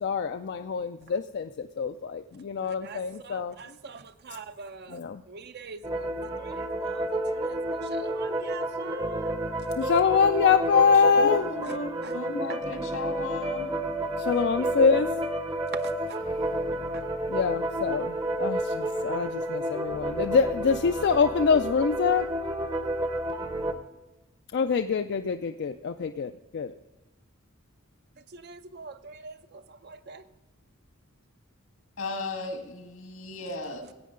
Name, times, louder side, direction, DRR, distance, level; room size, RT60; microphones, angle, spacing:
voice 1, 0.0-3.5 4.9-5.2 9.8-11.5 14.2-15.1 17.3-22.3 24.5-26.7, left 6 dB, 55° left, 8 dB, 0.4 m, -25 dB
voice 2, 2.6-9.3 11.6-12.8 14.6-14.7 15.7-16.2 16.5-16.6 16.9-17.1 28.2-30.3, right 4 dB, 55° right, 11 dB, 0.6 m, -44 dB
sound 1, 5.8-23.7, right 1 dB, 20° right, 0.7 m, -30 dB
voice 3, 11.2-13.8 32.0-33.9, left 2 dB, 85° left, 4 dB, 1.9 m, -35 dB
15.0 x 8.6 x 3.7 m, 1.1 s
head